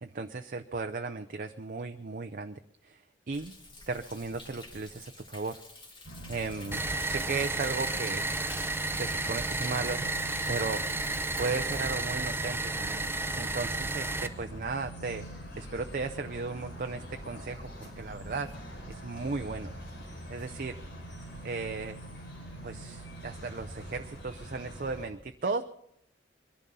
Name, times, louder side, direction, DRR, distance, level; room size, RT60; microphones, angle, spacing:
voice 1, 0.0-3.0 3.3-3.5 3.9-5.6 6.3-8.3 8.9-10.1 10.5-10.9 11.4-13.1 13.3-18.5 18.9-19.8 20.3-20.8 21.4-22.0 22.6-25.6, right 4 dB, 50° right, 7 dB, 0.6 m, -36 dB
Thunder, 3.3-12.0, left 2 dB, 25° left, 2.3 m, -49 dB
sound 1, 6.0-25.1, right 1 dB, 85° left, 5.1 m, -44 dB
sound 2, 6.7-14.3, right 2 dB, 15° right, 0.8 m, -32 dB
23.0 x 11.0 x 5.5 m, 0.75 s
head